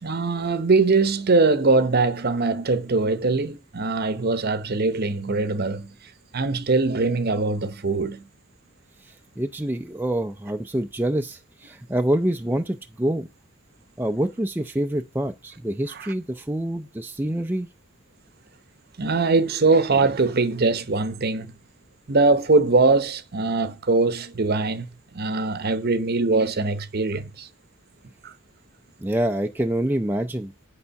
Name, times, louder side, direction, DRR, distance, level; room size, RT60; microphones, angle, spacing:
voice 1, 0.0-5.9 6.3-8.2 15.9-16.1 19.0-21.5 22.1-27.5 28.2-28.3, right 3 dB, 50° right, 0.8 m, -22 dB
voice 2, 9.4-13.3 14.0-17.7 29.0-30.5, right 1 dB, 10° right, 0.4 m, -26 dB
8.5 x 6.9 x 5.7 m
head